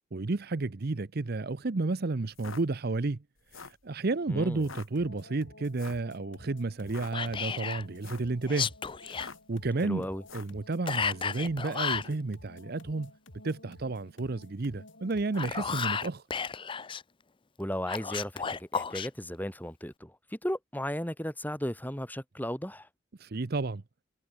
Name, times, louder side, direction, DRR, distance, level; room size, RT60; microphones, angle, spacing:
voice 1, 0.1-3.2 3.5-8.7 9.0-10.1 10.3-13.1 13.4-16.2 23.2-23.8, right 3 dB, 50° right, 0.7 m, -32 dB
sound 1, 2.3-2.6 3.4-3.8 4.6-4.9 5.7-6.1 6.8-7.1 7.9-8.3 9.1-9.5 10.2-10.6, left 5 dB, 85° left, 2.1 m, -46 dB
voice 2, 4.3-4.7 9.8-10.2 17.6-22.9, equal, 10° left, 4.0 m, -35 dB
sound 2, 5.0-16.0, left 1 dB, 65° left, 6.0 m, -53 dB
Whispering, 7.1-7.8 8.4-9.3 10.9-12.1 15.2-17.0 17.9-19.1, left 6 dB, 25° left, 0.5 m, -33 dB
head